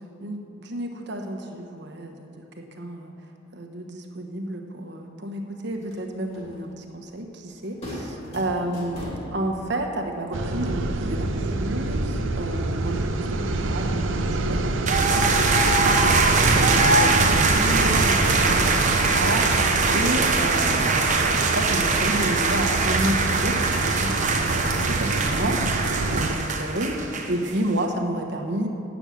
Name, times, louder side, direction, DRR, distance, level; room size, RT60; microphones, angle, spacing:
voice 1, 0.2-3.1 3.5-19.6 19.9-25.8 26.1-28.7, right 1 dB, 60° right, 3 dB, 1.2 m, -31 dB
sound 1, 5.7-16.2, equal, 30° left, 3.1 m, -43 dB
sound 2, 10.3-26.4, right 2 dB, 80° right, 0.7 m, -26 dB
sound 3, 14.9-27.5, right 4 dB, 40° right, 0.8 m, -22 dB
8.9 x 7.1 x 8.6 m, 2.7 s
head